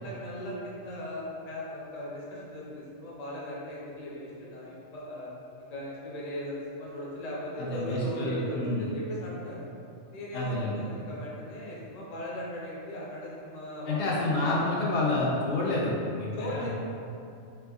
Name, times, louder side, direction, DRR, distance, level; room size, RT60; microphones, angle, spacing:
voice 1, 0.0-5.3 5.6-9.6 10.1-14.2 16.4-16.7, left 1 dB, 45° left, -5 dB, 0.6 m, -38 dB
voice 2, 7.6-8.9 10.3-10.8 13.9-16.7, left 2 dB, 70° left, -5 dB, 0.8 m, -28 dB
3.4 x 3.0 x 2.3 m, 2.6 s
omnidirectional pair, 1.3 m